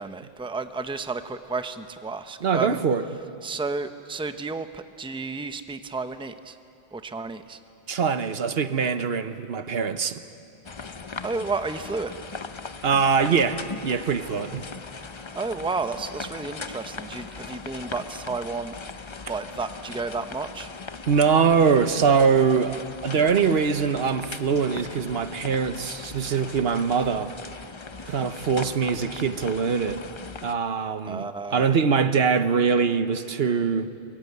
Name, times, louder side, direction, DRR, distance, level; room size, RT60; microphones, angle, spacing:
voice 1, 0.0-2.8 3.4-6.6 6.9-7.6 11.2-12.1 15.3-18.7 19.3-20.7 31.1-31.7, right 4 dB, 5° right, 0.7 m, -32 dB
voice 2, 2.4-3.0 7.9-10.2 12.8-14.6 21.1-27.3 28.0-30.0 30.4-33.9, right 6 dB, 75° right, 1.2 m, -23 dB
sound 1, 10.6-30.5, left 4 dB, 30° left, 0.6 m, -39 dB
23.5 x 22.0 x 9.4 m
omnidirectional pair, 1.0 m